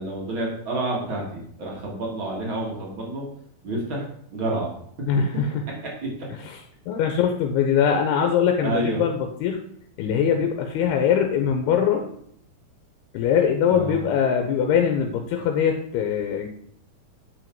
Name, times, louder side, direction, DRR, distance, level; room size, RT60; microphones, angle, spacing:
voice 1, 0.0-3.2 3.6-4.7 6.0-6.1 8.6-9.1 13.7-14.1, right 2 dB, 45° right, -2 dB, 1.7 m, -29 dB
voice 2, 5.1-5.5 6.5-6.6 6.9-9.6 10.0-12.1 13.1-16.5, left 7 dB, 80° left, 4 dB, 2.6 m, -22 dB
8.4 x 5.0 x 4.5 m, 0.66 s
omnidirectional pair, 4.7 m